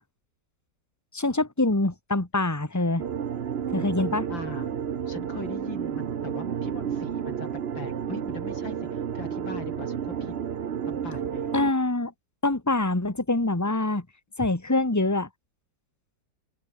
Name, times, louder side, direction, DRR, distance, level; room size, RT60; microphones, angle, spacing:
voice 1, 1.1-3.0 3.7-4.2 11.5-12.1 12.4-14.1 14.4-15.3, left 2 dB, 10° left, 2.2 m, -25 dB
sound 1, 3.0-11.7, right 8 dB, 50° right, 0.8 m, -31 dB
voice 2, 4.0-4.7 5.1-7.5 7.7-10.3 10.9-11.6, left 3 dB, 75° left, 6.2 m, -40 dB
open air
omnidirectional pair, 2.1 m